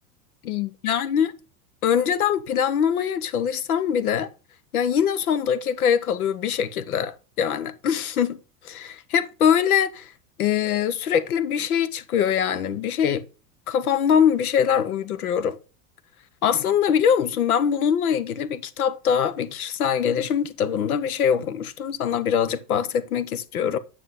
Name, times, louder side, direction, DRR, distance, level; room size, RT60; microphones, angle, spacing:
voice 1, 0.4-1.3 1.8-4.3 4.7-8.4 8.6-10.1 10.4-13.2 13.7-15.6 16.4-23.8, left 8 dB, 80° left, 1.1 m, -23 dB
9.4 x 6.7 x 3.7 m
hypercardioid pair, 95°, 44 cm